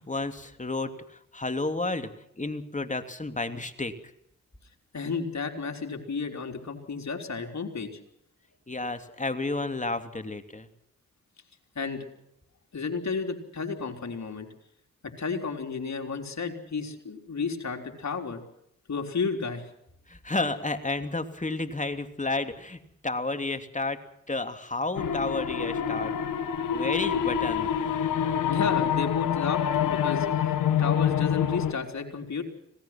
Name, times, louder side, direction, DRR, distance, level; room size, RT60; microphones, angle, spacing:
voice 1, 0.0-3.9 8.7-10.7 20.1-26.1 26.7-28.1, left 2 dB, 25° left, 8 dB, 2.9 m, -32 dB
voice 2, 4.9-7.9 11.8-12.1 12.7-14.5 15.2-18.4 18.9-19.6 28.5-30.5 30.8-32.4, left 5 dB, 60° left, 4 dB, 4.0 m, -32 dB
sound 1, 24.9-31.7, left 9 dB, 85° left, 1.4 m, -26 dB
26.0 x 18.0 x 6.1 m, 0.76 s
supercardioid pair, 40°, 31 cm